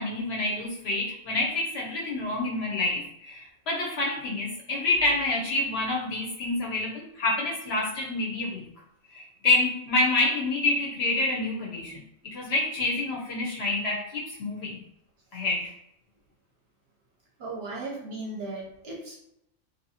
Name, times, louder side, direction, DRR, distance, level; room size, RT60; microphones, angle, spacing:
voice 1, 0.0-8.6 9.1-14.8 15.3-15.7, left 2 dB, 65° left, -2 dB, 0.7 m, -28 dB
voice 2, 17.4-19.2, right 2 dB, 60° right, -2 dB, 0.7 m, -36 dB
2.8 x 2.5 x 2.7 m, 0.76 s
omnidirectional pair, 1.4 m